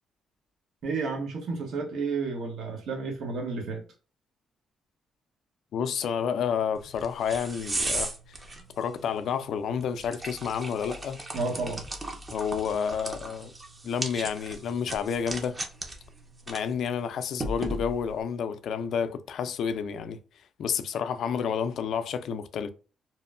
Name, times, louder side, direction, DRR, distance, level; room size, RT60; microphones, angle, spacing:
voice 1, 0.8-3.8 11.3-11.8, right 4 dB, 70° right, 0.8 m, -31 dB
voice 2, 5.7-8.4 8.8-11.2 12.3-13.5 13.8-15.6 16.5-20.2 20.6-22.7, left 7 dB, 70° left, 0.3 m, -30 dB
sound 1, 6.8-18.2, right 2 dB, 25° right, 0.5 m, -37 dB
2.9 x 2.1 x 2.3 m
cardioid pair, 90°, 0 cm